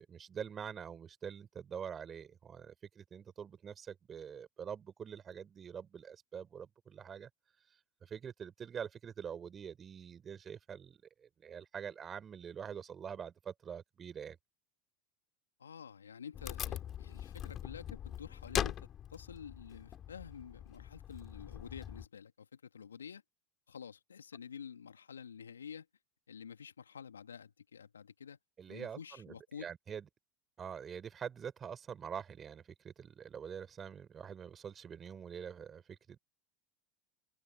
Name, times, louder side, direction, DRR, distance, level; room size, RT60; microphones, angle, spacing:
voice 1, 0.0-7.3 8.0-14.4 28.6-30.0 30.6-36.2, right 7 dB, 30° right, 4.6 m, -45 dB
voice 2, 15.6-23.2 23.7-25.9 26.3-28.4 28.7-29.7, left 7 dB, 85° left, 2.5 m, -49 dB
Wood, 16.3-22.1, left 10 dB, 40° left, 2.9 m, -41 dB
figure-of-eight pair, 80°, 0 cm